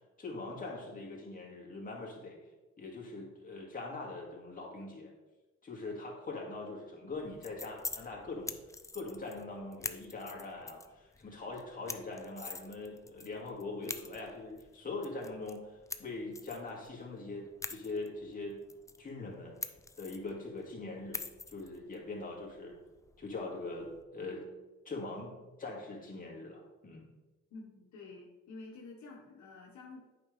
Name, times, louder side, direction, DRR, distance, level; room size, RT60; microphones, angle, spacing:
voice 1, 0.2-2.4 2.8-5.1 5.6-8.5 8.9-18.6 19.0-19.6 20.0-22.8 23.2-24.4 24.9-25.3 25.6-27.1, left 3 dB, 25° left, -2 dB, 2.1 m, -42 dB
sound 1, 7.1-24.0, left 3 dB, 10° left, 0.3 m, -47 dB
voice 2, 27.5-30.1, left 3 dB, 65° left, -1 dB, 1.3 m, -49 dB
8.4 x 5.2 x 3.3 m, 1.1 s
cardioid pair, 90°, 30 cm